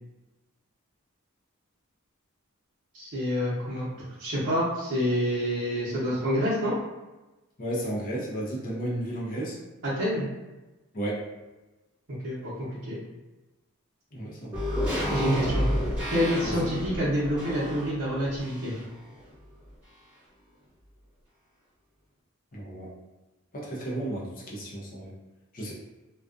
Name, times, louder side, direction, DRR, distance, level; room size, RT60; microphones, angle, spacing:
voice 1, 2.9-3.9 4.2-6.7 10.0-10.3 12.2-13.0 15.1-15.7 16.1-18.7, equal, 60° right, -9 dB, 0.8 m, -27 dB
voice 2, 7.6-9.6 10.9-11.3 14.1-14.7 16.4-16.6 22.5-22.9 23.5-25.1 25.5-25.7, right 1 dB, 40° left, -4 dB, 0.6 m, -33 dB
sound 1, 14.5-19.0 19.3-19.4, equal, 5° right, 0.9 m, -30 dB
2.3 x 2.3 x 2.4 m, 1.1 s
head